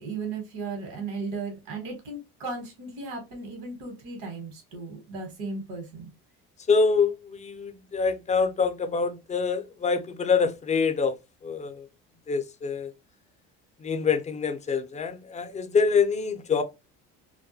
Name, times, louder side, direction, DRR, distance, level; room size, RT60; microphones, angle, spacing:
voice 1, 0.0-6.1, right 3 dB, 85° right, 1.1 m, -36 dB
voice 2, 6.7-11.2 11.4-11.8 12.3-12.9 13.8-16.6, left 5 dB, 25° left, 0.5 m, -25 dB
2.2 x 2.1 x 2.6 m
supercardioid pair, 95°, 29 cm